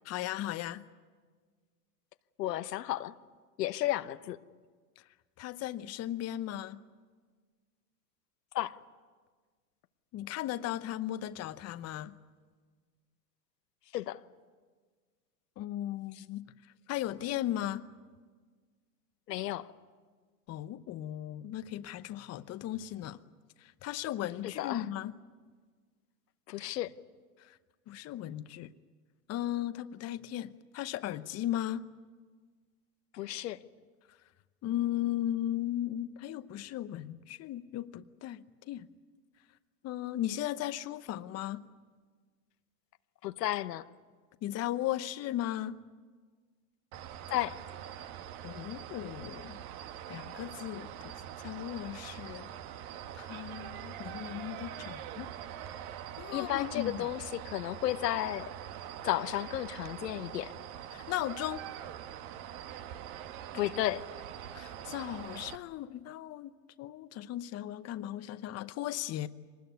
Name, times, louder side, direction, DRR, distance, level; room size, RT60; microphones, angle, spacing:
voice 1, 0.0-0.8 5.4-6.8 10.1-12.2 15.6-16.5 16.9-17.8 20.5-23.2 23.8-25.1 27.9-28.7 29.3-31.9 34.6-38.9 39.8-41.7 44.4-45.8 48.4-49.6 50.1-51.1 51.4-52.5 53.1-55.3 56.2-57.1 60.9-61.6 64.5-66.5 66.8-69.3, left 13 dB, 30° left, 0.9 m, -36 dB
voice 2, 2.4-3.1 3.6-4.4 8.5-8.7 13.9-14.2 19.3-19.7 24.4-24.8 26.5-26.9 33.1-33.6 43.2-43.8 47.3-47.6 56.3-58.4 59.0-60.5 63.5-64.0, left 14 dB, 85° left, 1.0 m, -33 dB
sound 1, 46.9-65.6, right 10 dB, 60° right, 1.5 m, -44 dB
24.0 x 20.0 x 9.4 m
hypercardioid pair, 110°, 48 cm